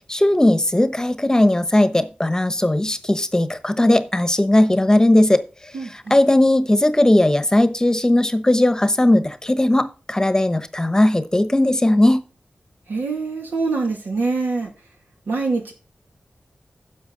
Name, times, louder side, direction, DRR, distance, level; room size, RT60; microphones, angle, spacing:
voice 1, 0.1-5.4 5.9-12.2, left 1 dB, 20° left, 1.0 m, -17 dB
voice 2, 5.7-6.2 12.9-14.7 15.3-15.7, right 3 dB, 85° right, 2.2 m, -24 dB
10.5 x 7.0 x 3.9 m
cardioid pair, 45°, 3 cm